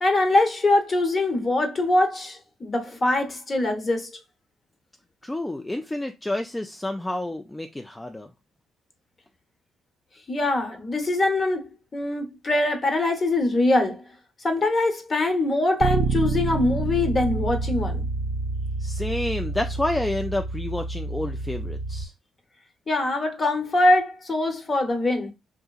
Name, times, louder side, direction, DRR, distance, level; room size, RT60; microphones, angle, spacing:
voice 1, 0.0-4.1 10.3-14.0 14.4-18.0 22.9-25.3, left 2 dB, 35° left, 0.9 m, -23 dB
voice 2, 5.2-8.3 18.8-22.1, left 1 dB, 10° left, 0.3 m, -29 dB
Bass guitar, 15.8-22.0, right 3 dB, 75° right, 0.4 m, -28 dB
3.5 x 2.8 x 2.3 m
cardioid pair, 90°, 0 cm